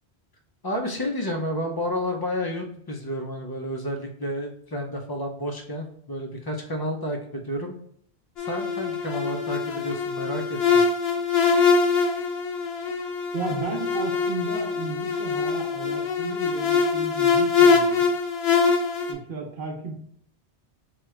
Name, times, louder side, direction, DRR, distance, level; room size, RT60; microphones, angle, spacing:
voice 1, 0.6-7.7 8.4-10.8, equal, 40° left, 2 dB, 0.3 m, -30 dB
sound 1, 8.4-19.1, left 5 dB, 70° left, 0.9 m, -23 dB
voice 2, 13.3-18.1 19.1-19.9, right 3 dB, 60° right, 0 dB, 0.9 m, -34 dB
4.5 x 2.3 x 3.1 m, 0.68 s
omnidirectional pair, 1.1 m